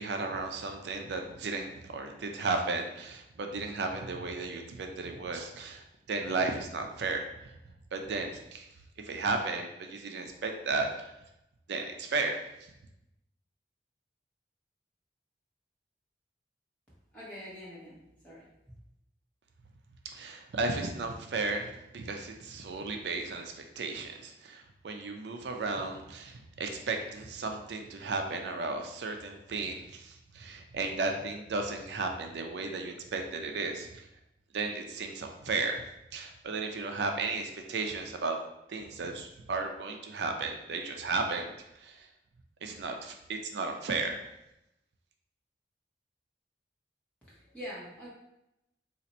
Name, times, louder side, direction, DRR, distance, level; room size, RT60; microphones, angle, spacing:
voice 1, 0.0-7.6 7.9-8.7 9.0-11.1 11.7-12.4 20.0-34.0 34.5-35.8 36.1-38.4 38.7-41.5 41.8-42.1 42.6-44.2, right 3 dB, 80° right, 4 dB, 0.4 m, -34 dB
voice 2, 17.1-18.0 18.2-18.4 47.3-48.1, equal, 5° left, -9 dB, 1.2 m, -44 dB
2.8 x 2.5 x 4.1 m, 0.86 s
head